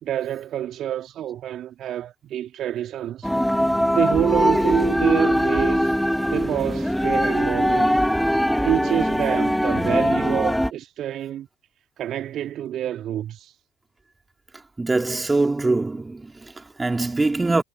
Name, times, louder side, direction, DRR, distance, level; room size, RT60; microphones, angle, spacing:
voice 1, 0.0-3.3 3.9-5.9 6.3-8.0 8.6-11.5 12.0-13.5, right 11 dB, 50° right, 2.0 m, -27 dB
sound 1, 3.2-10.7, equal, ahead, 1.7 m, -21 dB
voice 2, 14.8-17.6, right 3 dB, 15° right, 3.7 m, -23 dB
figure-of-eight pair, 55°, 0 cm